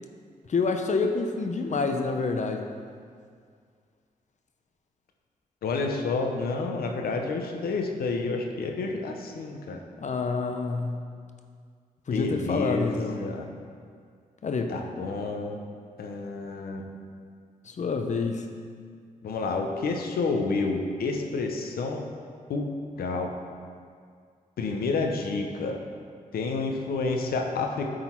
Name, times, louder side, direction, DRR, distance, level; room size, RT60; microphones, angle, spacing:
voice 1, 0.5-2.6 10.0-11.1 12.1-13.2 14.4-14.7 17.8-18.4, left 4 dB, 50° left, 5 dB, 0.7 m, -27 dB
voice 2, 5.6-9.8 12.1-13.5 14.7-15.6 16.0-16.8 19.2-22.1 22.5-22.7 23.0-23.3 24.6-25.8 26.3-27.9, left 3 dB, 85° left, 3 dB, 0.8 m, -29 dB
9.5 x 4.0 x 4.5 m, 2.1 s
cardioid pair, 75°, 15 cm